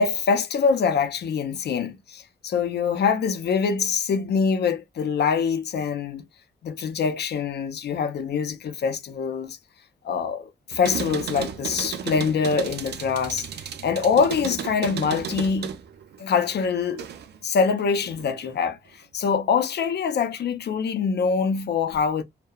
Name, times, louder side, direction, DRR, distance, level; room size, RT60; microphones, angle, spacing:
voice 1, 0.0-6.2 6.6-9.6 10.0-13.5 13.8-15.7 16.2-17.0 17.4-18.8 19.1-22.2, left 6 dB, 70° left, 0.6 m, -24 dB
sound 1, 10.7-17.4 17.8-18.6, right 8 dB, 70° right, 0.5 m, -34 dB
2.7 x 2.1 x 2.3 m
cardioid pair, 110°, 18 cm